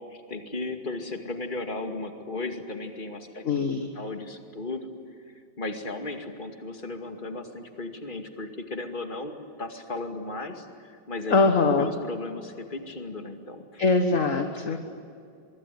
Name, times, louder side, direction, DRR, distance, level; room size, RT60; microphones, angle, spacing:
voice 1, 0.1-3.7 3.9-4.9 5.6-13.8 14.7-14.8, left 2 dB, 25° left, 5 dB, 2.3 m, -36 dB
voice 2, 3.5-3.9 11.3-11.9 13.8-14.8, left 4 dB, 45° left, 5 dB, 1.7 m, -22 dB
24.0 x 23.5 x 9.9 m, 2.4 s
omnidirectional pair, 2.1 m